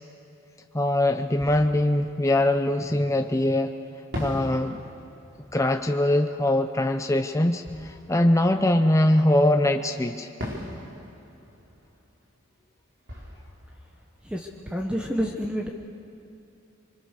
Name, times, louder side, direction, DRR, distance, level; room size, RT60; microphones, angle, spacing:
voice 1, 0.7-3.7 4.2-4.8 5.5-10.3, left 1 dB, 15° left, 6 dB, 0.6 m, -22 dB
Fireworks, 1.3-3.3 4.1-9.5 10.4-15.1, equal, 60° right, 4.8 m, -41 dB
voice 2, 14.2-15.7, equal, 5° right, 1 dB, 1.2 m, -29 dB
26.5 x 24.0 x 6.7 m, 2.8 s
head